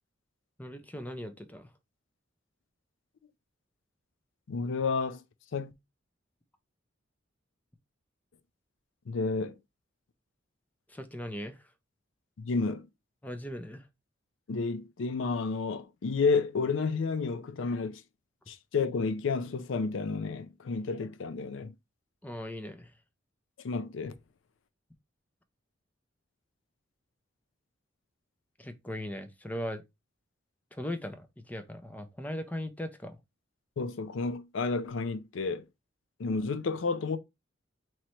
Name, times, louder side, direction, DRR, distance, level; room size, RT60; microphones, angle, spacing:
voice 1, 0.6-1.7 10.9-11.6 13.2-13.9 22.2-22.9 28.6-29.8 30.7-33.2, left 1 dB, 10° left, 0.5 m, -38 dB
voice 2, 4.5-5.2 5.5-5.7 9.1-9.6 12.4-12.9 14.5-18.0 18.5-21.7 23.6-24.1 33.8-35.7 36.2-37.2, left 4 dB, 65° left, 0.4 m, -31 dB
3.1 x 2.9 x 4.2 m
head